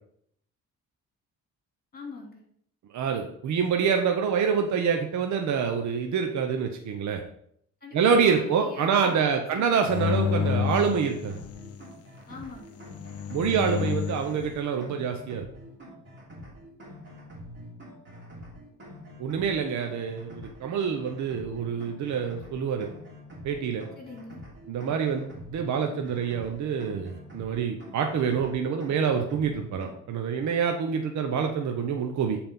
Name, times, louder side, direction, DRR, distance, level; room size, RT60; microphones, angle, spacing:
voice 1, 1.9-2.4 7.8-9.9 12.3-12.8 13.5-14.0 23.9-24.4, left 4 dB, 30° left, 0 dB, 3.0 m, -43 dB
voice 2, 2.9-7.2 7.9-11.4 13.3-15.5 19.2-22.9 23.4-23.9 24.7-32.4, right 6 dB, 60° right, 4 dB, 0.9 m, -26 dB
sound 1, 9.9-11.8 12.8-14.3, left 8 dB, 50° left, 0.7 m, -29 dB
sound 2, 10.8-29.9, equal, 35° right, 3.2 m, -46 dB
7.6 x 4.4 x 5.3 m, 0.68 s
cardioid pair, 110°, 32 cm